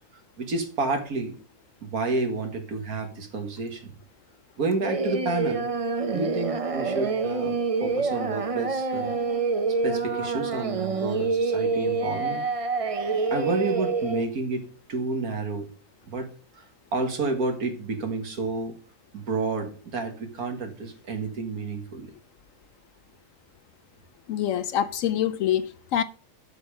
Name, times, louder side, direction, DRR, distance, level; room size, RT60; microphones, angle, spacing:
voice 1, 0.4-1.3 1.8-3.9 4.6-5.7 6.1-9.2 9.8-12.4 13.3-15.7 16.1-16.3 16.6-16.7 16.9-18.8 19.1-22.1, right 3 dB, 70° right, 2.1 m, -30 dB
Singing, 4.8-14.2, right 4 dB, 35° right, 0.5 m, -27 dB
voice 2, 24.3-26.0, left 10 dB, 70° left, 0.9 m, -25 dB
8.0 x 6.8 x 5.0 m
omnidirectional pair, 1.6 m